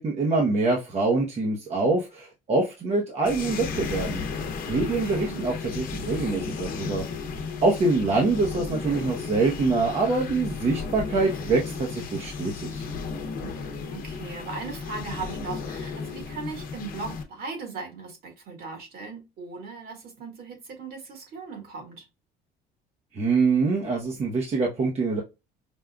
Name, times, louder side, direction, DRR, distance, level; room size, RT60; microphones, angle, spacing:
voice 1, 0.0-4.2 4.7-7.0 7.6-12.9 23.1-25.2, right 3 dB, 35° right, 0.9 m, -25 dB
sound 1, 3.3-17.2, left 5 dB, 55° left, 0.9 m, -34 dB
voice 2, 5.0-5.4 13.4-22.1, right 4 dB, 55° right, 1.7 m, -38 dB
5.2 x 2.3 x 2.3 m
cardioid pair, 105°, 18 cm